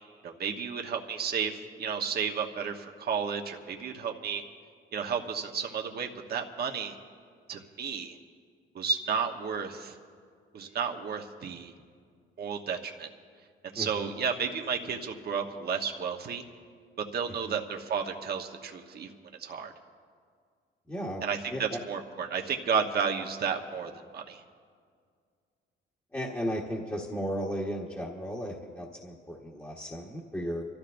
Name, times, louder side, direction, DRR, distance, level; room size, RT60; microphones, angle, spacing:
voice 1, 0.2-4.4 4.9-6.9 7.5-8.2 8.7-10.0 10.5-11.7 12.4-13.1 13.6-16.4 17.1-19.1 19.4-19.7 21.2-24.4, right 6 dB, 55° right, 2 dB, 1.1 m, -32 dB
voice 2, 13.7-14.1 17.4-17.6 20.9-21.2 21.5-21.8 26.1-30.6, equal, 15° left, -2 dB, 1.4 m, -35 dB
29.0 x 13.5 x 2.6 m, 2.1 s
cardioid pair, 90°, 20 cm